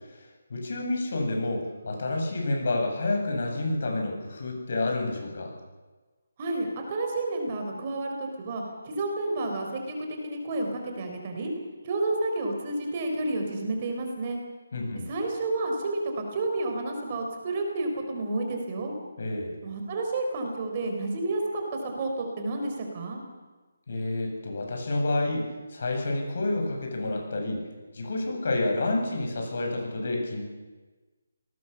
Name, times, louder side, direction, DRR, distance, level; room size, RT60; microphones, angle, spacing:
voice 1, 0.1-5.5 14.7-15.1 19.2-19.5 23.9-27.6 27.9-30.4, left 2 dB, 50° left, 2 dB, 7.8 m, -29 dB
voice 2, 6.4-11.5 11.8-14.4 15.1-18.9 19.6-23.2, right 2 dB, 25° right, 2 dB, 4.2 m, -30 dB
29.0 x 19.5 x 7.1 m, 1.3 s
hypercardioid pair, 170°, 0 cm